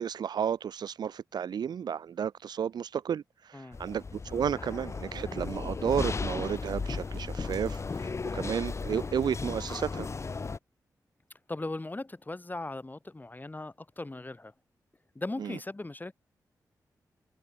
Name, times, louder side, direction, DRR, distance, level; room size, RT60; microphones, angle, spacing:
voice 1, 0.0-10.1 15.4-15.6, right 8 dB, 80° right, 0.8 m, -32 dB
sound 1, 3.7-10.6, left 4 dB, 40° left, 0.9 m, -35 dB
voice 2, 11.5-14.5 15.1-16.1, left 2 dB, 25° left, 6.8 m, -38 dB
cardioid pair, 60°, 7 cm